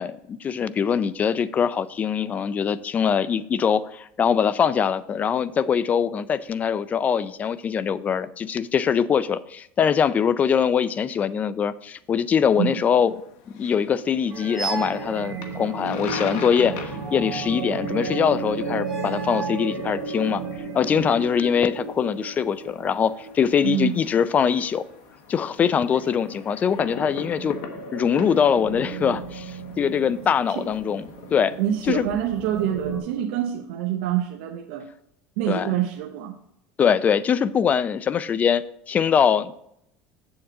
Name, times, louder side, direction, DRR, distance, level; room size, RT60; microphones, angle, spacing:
voice 1, 0.0-13.1 13.5-20.4 20.7-24.9 25.3-27.6 27.9-31.0 31.3-31.6 31.9-32.1 35.5-35.7 36.8-39.5, left 7 dB, 25° left, 16 dB, 0.4 m, -23 dB
sound 1, 12.5-31.7, left 7 dB, 75° left, 1.1 m, -43 dB
voice 2, 12.5-12.8 23.6-24.0 30.5-30.7 31.6-34.9 35.4-36.4, right 11 dB, 80° right, 2 dB, 0.8 m, -26 dB
sound 2, 14.3-24.9 25.5-25.6 25.9-26.1 26.5-33.0, right 4 dB, 40° right, 3.1 m, -34 dB
sound 3, 14.6-15.1 16.2-17.5 18.8-19.7, right 5 dB, ahead, 1.9 m, -34 dB
7.7 x 7.1 x 3.7 m, 0.75 s
cardioid pair, 140°, 6 cm